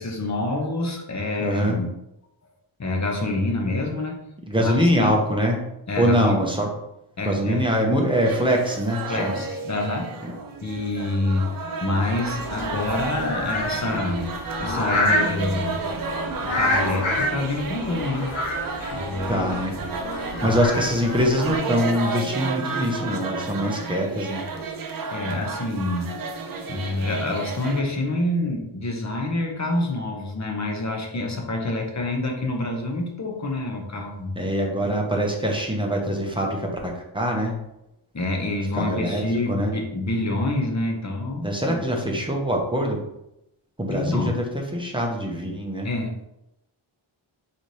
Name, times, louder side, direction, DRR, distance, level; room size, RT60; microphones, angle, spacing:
voice 1, 0.0-1.9 2.8-4.3 4.6-5.1 5.9-6.3 7.2-7.7 9.1-10.1 10.6-11.6 11.8-15.8 16.4-18.3 18.9-19.4 20.4-20.6 25.1-26.1 26.7-34.4 38.1-41.8 43.9-44.3 45.8-46.3, left 2 dB, 35° left, 1 dB, 0.8 m, -27 dB
voice 2, 1.4-1.8 4.5-5.6 6.0-6.7 7.2-9.4 10.2-10.3 19.3-19.8 20.4-24.4 34.4-37.6 38.7-39.7 41.4-43.0 43.8-45.9, equal, 10° right, 0 dB, 0.7 m, -23 dB
sound 1, 8.2-27.8, right 4 dB, 45° right, 0.5 m, -32 dB
sound 2, 12.0-21.6, left 1 dB, 70° left, 1.0 m, -28 dB
4.1 x 4.0 x 3.2 m, 0.86 s
wide cardioid pair, 170°, 49 cm